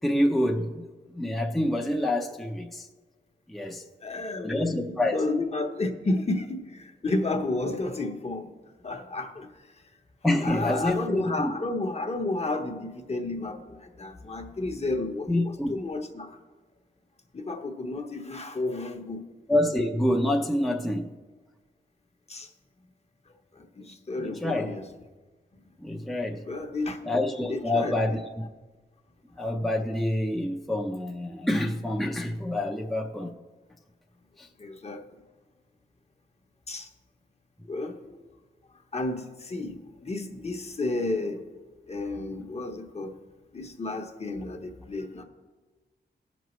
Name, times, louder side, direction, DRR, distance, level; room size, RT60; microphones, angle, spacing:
voice 1, 0.0-2.9 3.5-3.8 4.4-5.2 10.2-11.5 15.3-15.7 19.5-21.1 24.2-24.8 25.8-26.4 27.0-28.2 29.4-33.3 34.4-34.5, left 1 dB, ahead, 1 dB, 0.6 m, -27 dB
voice 2, 4.0-8.5 8.8-9.5 10.4-16.4 17.3-19.2 22.3-22.5 23.6-24.9 26.5-27.0 27.5-28.0 34.6-35.0 36.7-36.9 37.7-38.0 38.9-41.4 41.9-43.1 43.5-45.2, left 2 dB, 35° left, 4 dB, 0.9 m, -31 dB
18.0 x 6.1 x 3.1 m, 1.3 s
wide cardioid pair, 135°, 18 cm